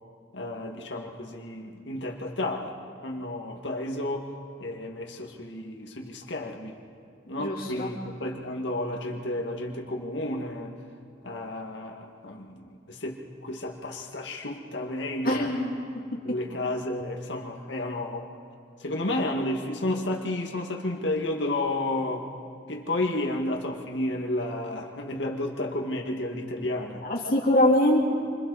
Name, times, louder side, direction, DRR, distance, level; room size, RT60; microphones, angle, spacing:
voice 1, 0.3-2.8 3.0-4.3 4.6-6.8 7.3-10.7 11.2-15.5 16.2-18.3 18.8-22.3 22.7-27.0, left 1 dB, 85° left, 0 dB, 2.0 m, -32 dB
voice 2, 7.4-7.9 15.2-15.7 27.0-28.0, left 1 dB, 55° left, -4 dB, 3.4 m, -23 dB
28.0 x 26.5 x 4.2 m, 2.3 s
head